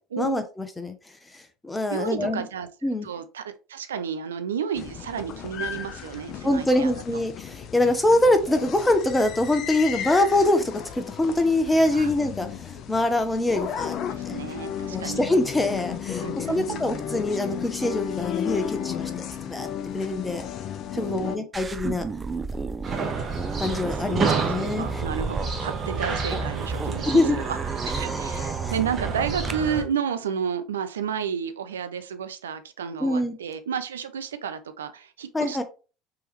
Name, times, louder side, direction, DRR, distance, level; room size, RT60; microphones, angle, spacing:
voice 1, 0.2-1.0 1.6-2.5 2.8-3.1 6.4-13.9 14.2-14.4 14.9-19.7 19.9-20.5 20.9-22.0 23.6-25.0 27.0-27.4 28.0-28.7 33.0-33.3 35.3-35.6, left 1 dB, 15° left, 0.8 m, -24 dB
voice 2, 1.9-2.7 3.0-7.0 11.9-12.1 14.0-15.2 16.2-16.8 21.0-21.5 23.9-27.6 27.9-35.6, right 7 dB, 85° right, 0.3 m, -32 dB
raw recital applausehowling, 4.8-21.4, left 8 dB, 50° left, 0.4 m, -34 dB
sound 1, 21.5-29.5, right 4 dB, 20° right, 0.4 m, -34 dB
sound 2, 22.8-29.8, right 5 dB, 40° right, 1.1 m, -29 dB
3.5 x 3.1 x 3.0 m
hypercardioid pair, 75°, 0 cm